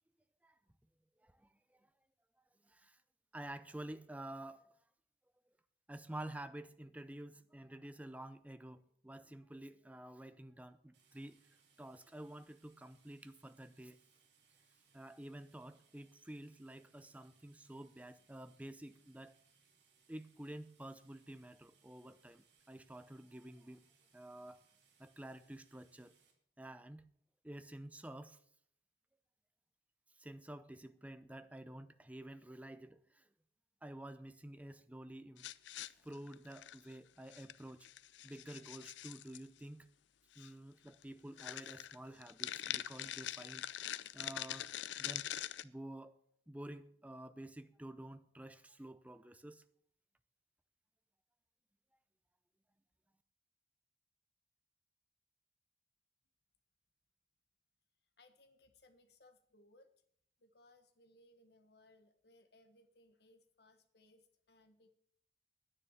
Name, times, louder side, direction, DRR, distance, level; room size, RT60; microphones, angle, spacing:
voice 1, 1.2-1.9 2.6-3.0 3.3-4.7 5.9-11.4 11.8-14.0 14.9-19.4 20.1-23.8 24.1-24.6 25.0-26.1 26.6-27.0 27.4-28.4 30.2-33.3 33.8-35.5 36.0-37.9 38.2-39.9 40.4-43.7 44.1-44.7 45.0-45.3 45.6-46.2 46.5-49.6, right 1 dB, 10° right, 0.5 m, -50 dB
sound 1, 10.9-26.3, right 5 dB, 70° right, 2.7 m, -72 dB
sound 2, 35.4-36.9 37.3-37.6 37.8-39.4 40.4-40.5 40.9-41.0 41.4-45.6, left 12 dB, 75° left, 0.4 m, -44 dB
voice 2, 58.2-59.9 60.4-64.9, left 1 dB, 60° left, 1.4 m, -66 dB
10.0 x 9.6 x 7.2 m
head